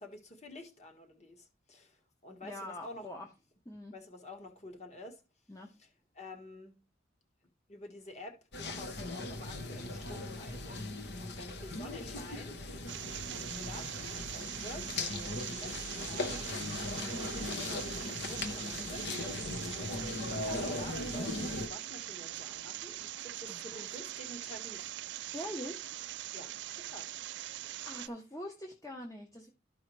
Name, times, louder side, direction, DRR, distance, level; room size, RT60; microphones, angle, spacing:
voice 1, 0.0-3.1 3.9-5.2 5.8-5.9 6.1-6.8 7.7-10.8 11.2-12.6 13.3-24.9 26.3-27.1, left 1 dB, 35° left, 1.5 m, -49 dB
voice 2, 2.4-3.3 3.6-3.9 5.5-5.7 16.8-17.2 23.5-23.8 25.3-25.9 27.8-29.5, left 1 dB, 15° left, 0.8 m, -44 dB
sound 1, 8.5-21.7, left 2 dB, 60° left, 1.0 m, -39 dB
sound 2, 12.9-28.1, right 14 dB, 65° right, 0.3 m, -42 dB
13.0 x 4.7 x 3.2 m
head